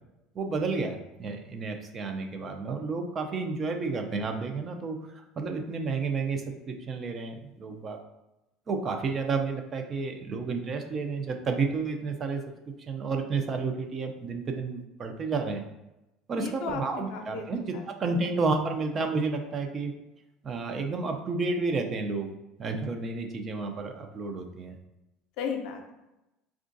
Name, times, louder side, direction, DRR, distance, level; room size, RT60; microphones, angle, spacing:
voice 1, 0.3-5.0 5.4-8.0 8.7-12.4 12.9-15.6 16.3-19.9 20.4-22.3 22.6-24.7, right 4 dB, 35° right, 5 dB, 0.5 m, -31 dB
voice 2, 16.4-17.5 17.7-18.2 25.4-25.9, left 6 dB, 70° left, 4 dB, 0.6 m, -35 dB
4.4 x 2.4 x 2.5 m, 0.95 s
supercardioid pair, 110°, 0 cm